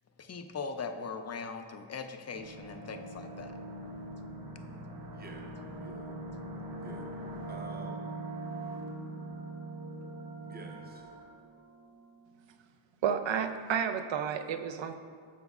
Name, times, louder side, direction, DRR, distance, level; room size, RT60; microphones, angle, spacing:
voice 1, 0.2-3.6, left 5 dB, 35° left, 7 dB, 0.4 m, -40 dB
sound 1, 2.3-12.1, right 2 dB, 45° right, 1.0 m, -42 dB
voice 2, 5.1-6.2 6.8-7.2 7.5-8.2 10.4-11.1, right 1 dB, 20° right, 1 dB, 0.7 m, -48 dB
voice 3, 13.0-14.9, right 7 dB, 65° right, 8 dB, 0.5 m, -31 dB
9.2 x 6.9 x 2.4 m, 2.1 s
wide cardioid pair, 135°, 50 cm